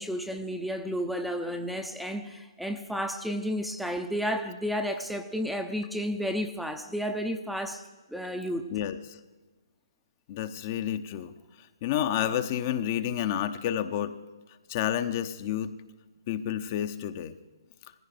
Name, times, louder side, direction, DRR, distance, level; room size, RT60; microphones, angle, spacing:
voice 1, 0.0-8.6, equal, ahead, 0.7 m, -32 dB
voice 2, 10.3-11.3 11.8-14.1 14.7-15.7 16.3-17.4, left 10 dB, 35° left, 0.8 m, -30 dB
18.5 x 15.0 x 5.1 m
figure-of-eight pair, 135°, 2 cm